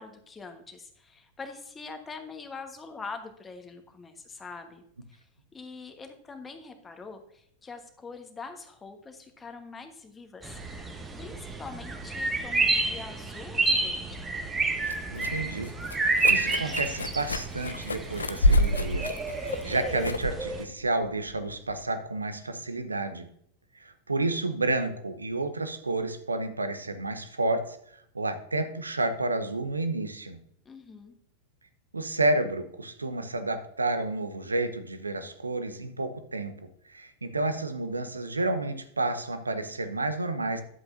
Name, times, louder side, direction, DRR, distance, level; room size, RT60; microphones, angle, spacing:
voice 1, 0.0-4.8 5.1-5.3 5.5-10.6 10.8-14.3 30.6-31.1, left 4 dB, 15° left, 6 dB, 1.3 m, -44 dB
sound 1, 10.4-20.6, right 3 dB, 15° right, 1.0 m, -30 dB
sound 2, 14.1-21.8, left 1 dB, 75° left, 0.4 m, -30 dB
voice 2, 15.1-15.7 16.3-19.1 19.4-23.3 23.8-30.4 31.9-36.6 36.9-40.6, right 2 dB, 80° right, 10 dB, 0.8 m, -30 dB
11.0 x 7.8 x 2.7 m, 0.69 s
figure-of-eight pair, 90°, 0 cm